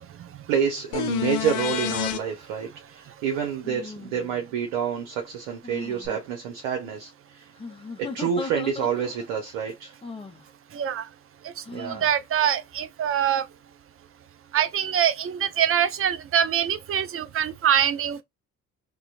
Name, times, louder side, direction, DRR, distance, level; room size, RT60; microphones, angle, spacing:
voice 1, 0.5-7.5 8.0-9.9 11.7-12.1, right 7 dB, 75° right, 0.8 m, -28 dB
sound 1, 0.9-2.2 6.0-6.1, left 11 dB, 70° left, 0.6 m, -28 dB
sound 2, 2.1-2.3 3.6-4.5 5.6-6.2 7.6-9.3 10.0-10.5 11.6-12.1, left 4 dB, 15° left, 0.6 m, -38 dB
voice 2, 10.7-11.1 11.8-13.4 14.5-18.2, right 9 dB, 35° right, 0.5 m, -24 dB
2.9 x 2.2 x 2.4 m
hypercardioid pair, 55°, 39 cm